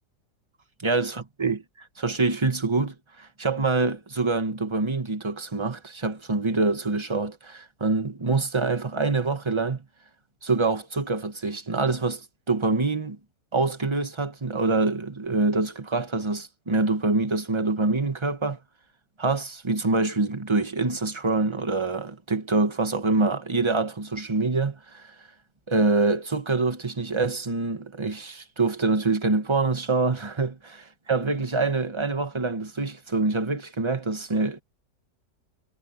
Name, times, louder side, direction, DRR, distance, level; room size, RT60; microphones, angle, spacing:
voice 1, 0.8-9.8 10.4-13.2 13.5-18.6 19.2-25.0 25.7-34.6, right 3 dB, 15° right, 1.5 m, -25 dB
omnidirectional pair, 1.8 m